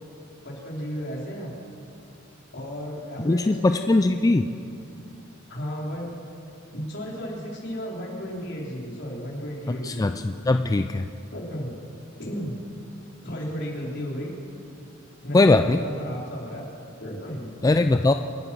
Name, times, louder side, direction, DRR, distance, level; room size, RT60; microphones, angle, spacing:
voice 1, 0.4-1.5 2.5-4.3 5.5-6.1 6.7-10.1 11.3-11.8 12.2-12.6 13.2-14.3 15.2-16.6 17.0-17.5, equal, 60° left, -3 dB, 4.0 m, -34 dB
voice 2, 3.3-4.4 9.9-11.0 15.3-15.8 17.6-18.1, left 2 dB, 20° left, 8 dB, 0.3 m, -20 dB
26.0 x 8.8 x 6.1 m, 2.5 s
head